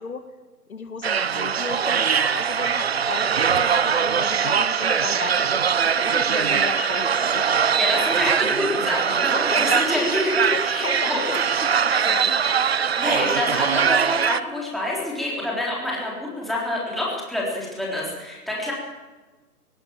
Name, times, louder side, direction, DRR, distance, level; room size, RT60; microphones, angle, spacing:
voice 1, 0.7-7.5 8.0-8.5 9.3-12.4, left 5 dB, 60° left, 8 dB, 2.0 m, -34 dB
sound 1, 1.0-14.4, right 7 dB, 40° right, 0.7 m, -22 dB
voice 2, 7.8-11.2 12.9-18.7, left 1 dB, ahead, -5 dB, 3.8 m, -27 dB
19.0 x 18.5 x 8.9 m, 1.2 s
hypercardioid pair, 155°, 47 cm